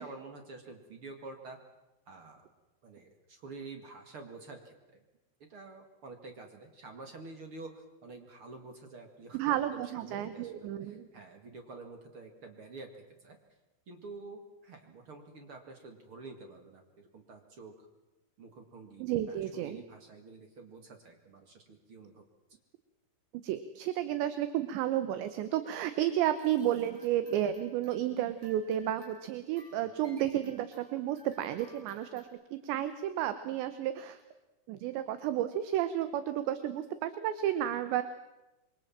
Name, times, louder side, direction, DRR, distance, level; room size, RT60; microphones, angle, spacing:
voice 1, 0.0-1.6 2.1-2.5 2.8-5.0 5.4-13.4 13.9-17.9 18.4-22.2 30.0-30.2, right 3 dB, 50° right, 4 dB, 1.7 m, -49 dB
voice 2, 9.3-11.1 19.0-19.8 23.3-34.2 34.7-38.0, right 11 dB, 75° right, 11 dB, 3.0 m, -32 dB
sound 1, 26.4-32.2, right 1 dB, 30° right, 8.0 m, -60 dB
27.0 x 23.5 x 7.5 m, 1.0 s
omnidirectional pair, 5.8 m